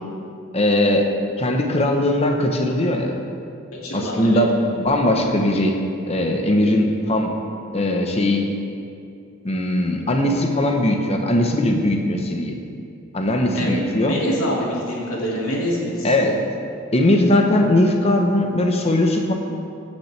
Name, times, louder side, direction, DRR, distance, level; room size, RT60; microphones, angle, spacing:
voice 1, 0.5-1.1 1.4-3.1 3.9-4.5 4.8-5.8 6.1-7.3 7.7-8.4 9.4-12.6 13.1-14.2 16.0-16.3 16.9-19.3, left 1 dB, 30° left, 3 dB, 0.9 m, -19 dB
voice 2, 3.8-4.4 13.5-16.3, equal, 85° left, -4 dB, 2.3 m, -26 dB
16.0 x 7.3 x 3.3 m, 2.6 s
head